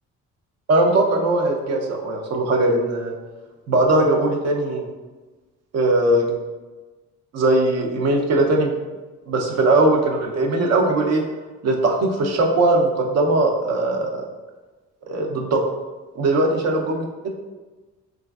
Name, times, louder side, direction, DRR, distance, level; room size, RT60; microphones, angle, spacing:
voice 1, 0.7-3.1 3.7-4.8 5.7-6.3 7.3-8.7 9.3-11.2 11.6-14.2 15.1-15.6 16.2-17.1, right 2 dB, 60° right, 2 dB, 0.6 m, -19 dB
3.1 x 2.4 x 2.3 m, 1.2 s
cardioid pair, 90°, 30 cm